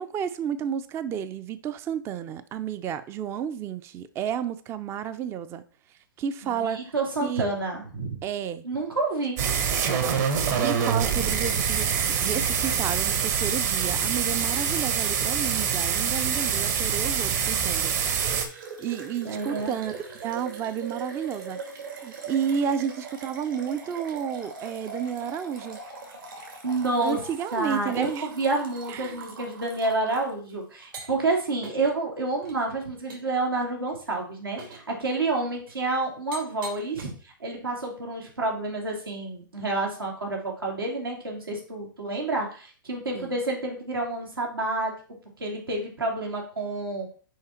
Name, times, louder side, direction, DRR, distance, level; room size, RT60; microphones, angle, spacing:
voice 1, 0.0-5.6 6.2-6.9 7.2-7.4 8.2-8.6 10.6-17.9 18.8-19.9 20.2-21.6 22.0-25.8 27.0-28.3 28.9-29.2 43.1-43.3, right 8 dB, 20° right, 0.4 m, -31 dB
voice 2, 6.4-8.2 8.6-9.6 19.2-19.7 26.6-27.2 27.5-44.9 45.4-47.1, right 2 dB, 90° right, 2.7 m, -29 dB
sound 1, 9.4-18.5, right 7 dB, 50° right, 1.3 m, -25 dB
sound 2, 18.2-30.3 30.8-31.3 31.6-31.9 32.4-32.5 33.1-33.4 33.9-34.1 34.6-34.9 35.7-35.8 36.3-37.0, right 4 dB, 70° right, 2.5 m, -41 dB
6.5 x 4.9 x 4.3 m
hypercardioid pair, 120°, 12 cm